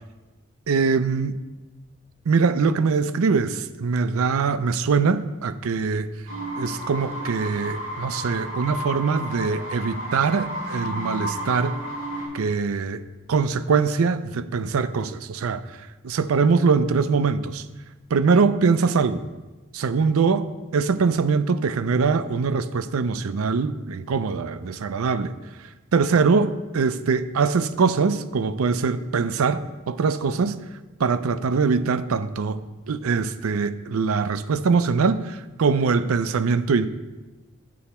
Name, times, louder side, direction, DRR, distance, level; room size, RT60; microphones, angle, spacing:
voice 1, 0.7-1.3 2.3-6.1 6.6-11.8 12.3-13.0 13.3-17.7 18.1-19.2 19.7-30.6 31.0-36.9, right 5 dB, 85° right, 13 dB, 0.5 m, -23 dB
sound 1, 6.3-12.3, equal, 60° right, 3.1 m, -32 dB
8.5 x 6.9 x 4.3 m, 1.2 s
head